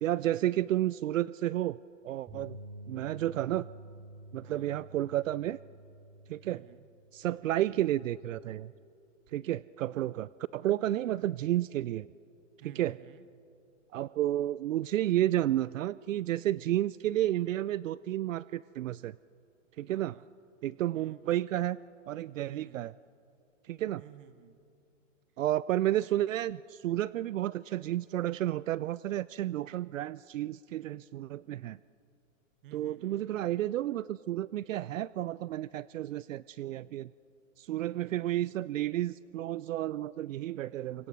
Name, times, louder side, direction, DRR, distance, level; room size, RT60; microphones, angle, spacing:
voice 1, 0.0-1.8 2.0-2.6 2.9-3.7 4.3-5.6 6.3-6.6 7.1-8.7 9.3-12.1 12.8-12.9 13.9-19.2 19.8-20.2 20.6-21.8 22.1-22.9 23.6-24.0 25.4-31.8 32.7-37.1 37.6-41.1, right 13 dB, 75° right, 20 dB, 0.5 m, -31 dB
sound 1, 2.3-8.5, right 1 dB, 15° right, 3.1 m, -50 dB
voice 2, 4.4-4.7 6.5-6.9 12.6-13.3 19.9-20.4 20.9-21.3 22.4-22.9 24.0-24.6 32.6-33.3, right 10 dB, 40° right, 12 dB, 1.4 m, -54 dB
26.0 x 24.0 x 6.2 m, 2.6 s
hypercardioid pair, 140°, 39 cm